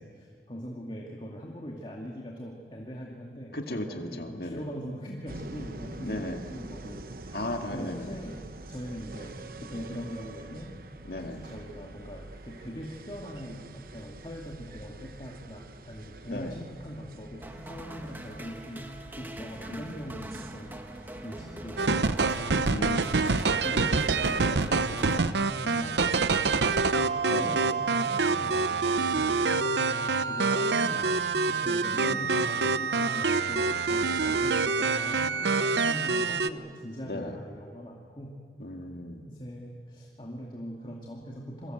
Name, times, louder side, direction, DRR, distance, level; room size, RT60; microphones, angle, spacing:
voice 1, 0.0-7.4 7.7-8.4 8.7-9.3 9.6-10.7 11.3-18.9 19.2-22.7 23.4-25.3 25.6-29.8 30.2-38.4 39.3-41.7, equal, 30° left, -1 dB, 2.2 m, -41 dB
voice 2, 3.5-4.6 6.0-6.4 7.3-8.2 11.1-11.4 16.3-16.6 22.7-23.8 27.3-27.6 31.9-32.4 37.0-37.4 38.6-39.2, left 1 dB, 60° left, 4 dB, 2.1 m, -36 dB
sound 1, 5.3-23.4, right 2 dB, 55° right, 1.0 m, -46 dB
sound 2, 17.4-26.0, right 1 dB, 10° right, 1.4 m, -43 dB
sound 3, 21.8-36.5, right 4 dB, 80° right, 0.8 m, -26 dB
27.5 x 24.0 x 7.9 m, 2.3 s
head